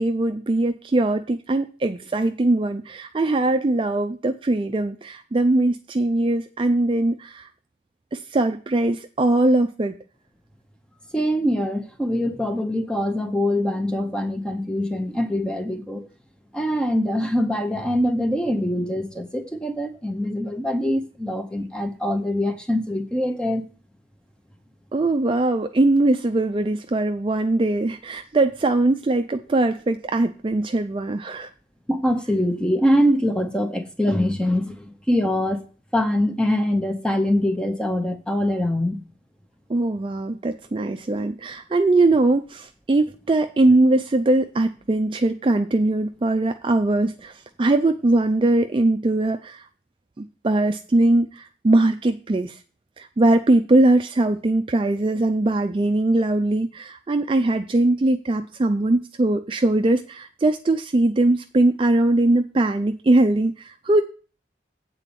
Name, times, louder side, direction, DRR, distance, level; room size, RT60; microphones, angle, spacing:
voice 1, 0.0-7.5 8.1-10.0 24.9-31.5 39.7-49.6 50.2-52.6 53.0-64.0, right 2 dB, 30° right, 0.4 m, -21 dB
voice 2, 11.1-16.1 16.5-23.6 31.9-35.6 35.9-39.0, left 1 dB, 5° left, 0.8 m, -23 dB
8.4 x 4.1 x 6.9 m
head